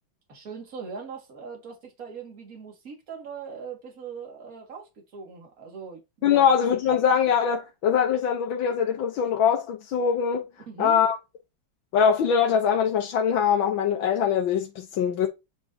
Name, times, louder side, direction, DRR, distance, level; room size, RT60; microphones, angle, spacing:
voice 1, 0.3-6.6 6.8-6.9 10.7-11.0, right 5 dB, 45° right, 2.4 m, -40 dB
voice 2, 6.2-10.5 10.8-11.2 11.9-15.3, left 7 dB, 85° left, 1.7 m, -22 dB
9.2 x 4.8 x 2.8 m
omnidirectional pair, 2.1 m